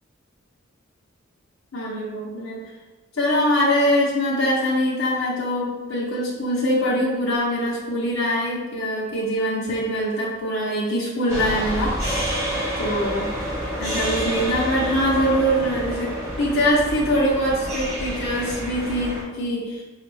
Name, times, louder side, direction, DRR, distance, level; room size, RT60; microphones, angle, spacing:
voice 1, 1.7-2.6 3.2-12.3 12.8-13.3 13.8-19.8, equal, 70° left, -6 dB, 0.7 m, -23 dB
sound 1, 11.3-19.2, equal, 15° right, 1.3 m, -28 dB
5.1 x 2.3 x 3.3 m, 1.2 s
head